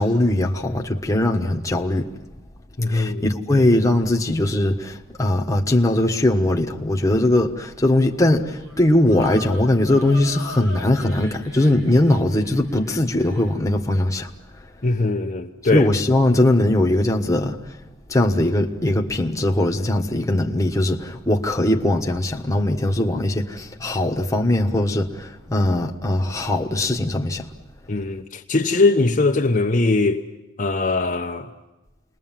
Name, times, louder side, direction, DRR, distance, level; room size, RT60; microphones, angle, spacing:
voice 1, 0.0-2.1 2.9-14.3 15.7-17.6 18.1-27.5, left 1 dB, 15° left, 1.4 m, -20 dB
voice 2, 2.8-3.2 3.5-3.6 14.8-15.9 27.9-30.2 30.6-31.5, left 3 dB, 40° left, 1.0 m, -21 dB
sound 1, 8.3-13.6, equal, 65° right, 3.6 m, -40 dB
29.0 x 21.0 x 7.5 m
head